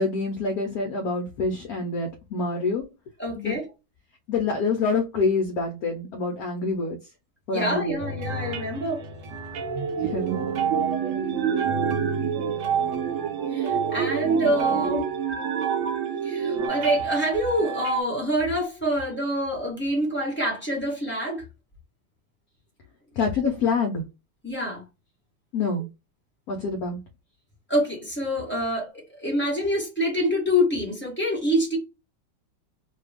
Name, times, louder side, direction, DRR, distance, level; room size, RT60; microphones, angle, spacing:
voice 1, 0.0-2.8 3.4-3.6 4.3-7.0 7.5-8.0 10.0-10.4 23.2-24.0 25.5-25.9 26.5-27.0, left 4 dB, 70° left, 0.9 m, -26 dB
voice 2, 3.2-3.6 7.5-9.0 10.2-10.3 13.5-15.1 16.2-21.4 24.4-24.8 27.7-31.8, equal, 10° left, 0.7 m, -26 dB
sound 1, 8.0-18.0, right 6 dB, 70° right, 1.0 m, -31 dB
sound 2, 9.5-16.7, right 7 dB, 90° right, 0.6 m, -28 dB
3.0 x 2.3 x 3.3 m
omnidirectional pair, 2.1 m